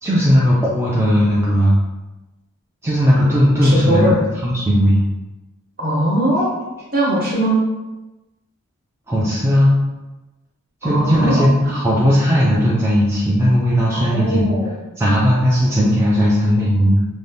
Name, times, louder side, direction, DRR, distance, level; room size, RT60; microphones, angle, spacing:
voice 1, 0.0-1.8 2.8-5.0 9.1-9.8 10.8-14.4 15.0-17.1, equal, 10° right, -7 dB, 0.3 m, -16 dB
voice 2, 3.6-4.2 5.8-6.5 6.9-7.6 10.8-11.4 13.9-14.7, right 1 dB, 40° right, -6 dB, 1.0 m, -19 dB
2.6 x 2.2 x 3.3 m, 1.1 s
head